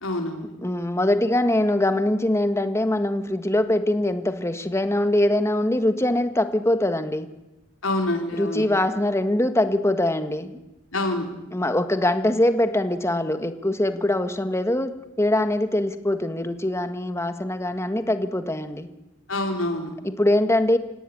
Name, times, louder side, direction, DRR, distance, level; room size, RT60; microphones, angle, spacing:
voice 1, 0.0-0.5 7.8-8.7 10.9-11.3 19.3-19.9, left 1 dB, 80° left, 4 dB, 4.5 m, -26 dB
voice 2, 0.6-7.3 8.3-10.6 11.5-18.9 20.0-20.8, left 1 dB, 15° left, 9 dB, 1.6 m, -23 dB
26.5 x 17.0 x 10.0 m, 1.0 s
head